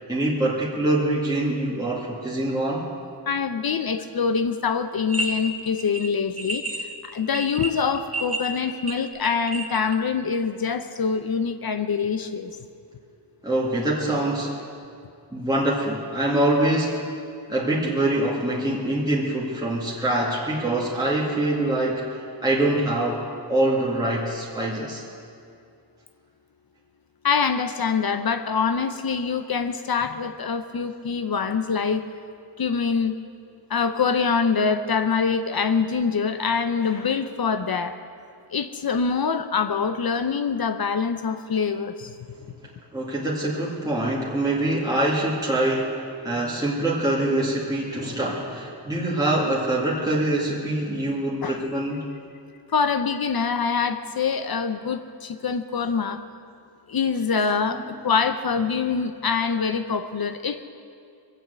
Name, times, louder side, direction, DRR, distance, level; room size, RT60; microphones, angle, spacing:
voice 1, 0.1-2.9 13.4-14.6 15.3-17.0 17.5-25.0 42.9-52.0, right 1 dB, 10° right, -6 dB, 2.1 m, -24 dB
voice 2, 3.3-12.6 27.2-32.1 32.6-33.1 33.7-38.0 38.5-42.2 51.4-51.6 52.7-56.2 56.9-60.6, left 5 dB, 55° left, 9 dB, 0.7 m, -25 dB
sound 1, 5.1-5.3 5.6-9.9, right 2 dB, 35° right, 1.3 m, -30 dB
22.0 x 7.9 x 8.0 m, 2.4 s
wide cardioid pair, 130°, 42 cm